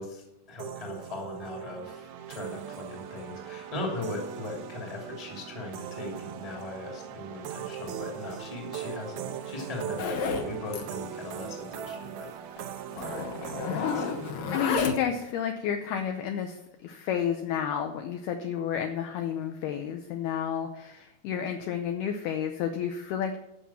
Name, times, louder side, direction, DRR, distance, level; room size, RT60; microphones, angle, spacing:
voice 1, 0.0-12.3 12.9-14.5, left 2 dB, 15° left, 0 dB, 1.5 m, -39 dB
sound 1, 0.6-14.3, right 10 dB, 80° right, 2.2 m, -40 dB
Zipper (clothing), 10.0-10.5 10.7-10.9 11.2-11.3 11.7-11.8 12.6-12.7 13.0-15.2, left 5 dB, 70° left, 2.2 m, -31 dB
voice 2, 14.5-23.4, left 8 dB, 85° left, 6 dB, 2.2 m, -31 dB
13.5 x 5.5 x 7.2 m, 0.87 s
omnidirectional pair, 5.4 m